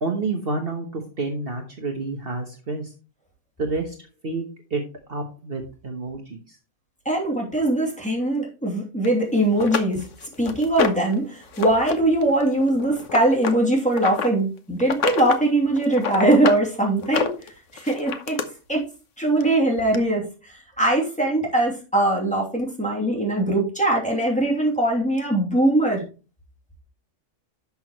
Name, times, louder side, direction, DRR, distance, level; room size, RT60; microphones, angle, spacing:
voice 1, 0.0-2.9 3.6-4.0 4.2-4.4 4.7-4.8 5.1-6.6, right 3 dB, 50° right, 3 dB, 1.4 m, -29 dB
voice 2, 7.0-10.1 10.4-17.3 17.7-18.4 18.7-18.9 19.2-26.0, right 1 dB, 5° left, -3 dB, 2.8 m, -21 dB
sound 1, 9.0-9.1 9.6-11.1 11.5-11.9 12.2-14.3 14.8-15.4 15.8-16.6 17.0-18.4 19.4-19.5 19.9-20.0, left 6 dB, 80° left, 1.3 m, -27 dB
11.0 x 6.3 x 3.1 m, 0.33 s
omnidirectional pair, 1.3 m